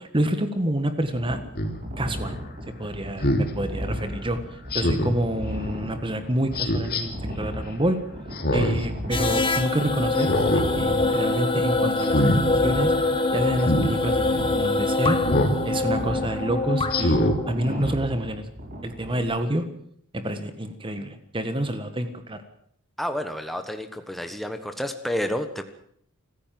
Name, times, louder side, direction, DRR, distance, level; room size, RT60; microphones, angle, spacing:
voice 1, 0.0-1.4 2.0-2.4 2.8-7.1 7.4-8.0 8.5-12.9 13.3-15.2 15.6-18.4 18.8-19.6 20.1-22.4, right 1 dB, 25° right, 9 dB, 1.6 m, -28 dB
sound 1, 1.1-19.2, equal, 40° right, 5.2 m, -35 dB
Speech synthesizer, 1.6-1.7 3.2-3.5 4.7-5.2 6.5-7.0 8.3-8.8 9.2-9.3 10.2-10.7 11.1-11.4 12.0-12.4 13.6-13.9 15.2-15.6 16.1-16.2 16.9-17.4 17.8-17.9, left 1 dB, 45° left, 3.1 m, -23 dB
sound 2, 9.1-17.5, left 2 dB, 25° left, 1.6 m, -24 dB
voice 2, 23.0-25.7, equal, ahead, 7 dB, 1.3 m, -30 dB
25.5 x 15.0 x 7.7 m, 0.67 s
head